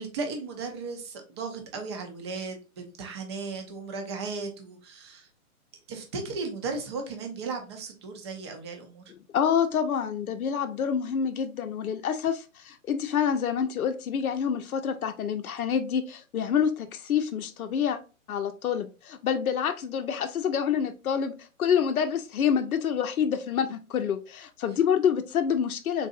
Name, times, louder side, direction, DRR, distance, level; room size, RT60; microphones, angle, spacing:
voice 1, 0.0-5.3 5.9-9.0, right 4 dB, 20° right, 4 dB, 0.4 m, -36 dB
voice 2, 9.3-18.0 18.3-21.3 21.6-26.1, left 7 dB, 75° left, 8 dB, 0.6 m, -27 dB
3.9 x 2.6 x 2.4 m, 0.32 s
figure-of-eight pair, 130°, 43 cm